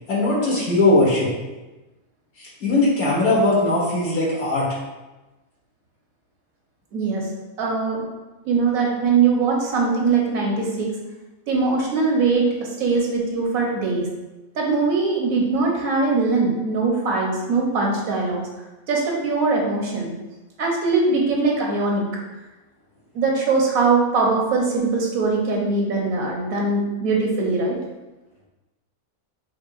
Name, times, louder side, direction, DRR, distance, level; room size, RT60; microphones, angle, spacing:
voice 1, 0.1-1.3 2.6-4.7, left 2 dB, 75° left, -6 dB, 1.9 m, -19 dB
voice 2, 6.9-7.2 7.6-8.1 8.4-10.9 11.5-14.1 14.6-18.5 18.9-20.1 20.6-22.1 23.1-27.8, right 4 dB, 75° right, -1 dB, 1.3 m, -21 dB
5.5 x 3.2 x 2.5 m, 1.1 s
omnidirectional pair, 1.5 m